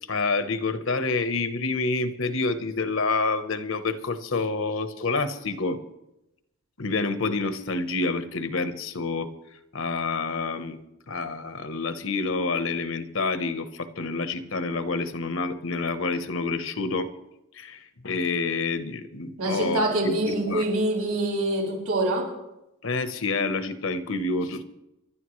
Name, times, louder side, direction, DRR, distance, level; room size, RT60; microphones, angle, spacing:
voice 1, 0.1-5.8 6.8-9.3 9.7-10.8 11.1-17.1 17.5-19.8 20.2-20.6 22.8-24.6, left 3 dB, 60° left, 10 dB, 1.0 m, -28 dB
voice 2, 19.4-22.3, right 1 dB, 85° right, -2 dB, 6.2 m, -25 dB
26.5 x 12.0 x 3.2 m, 0.90 s
head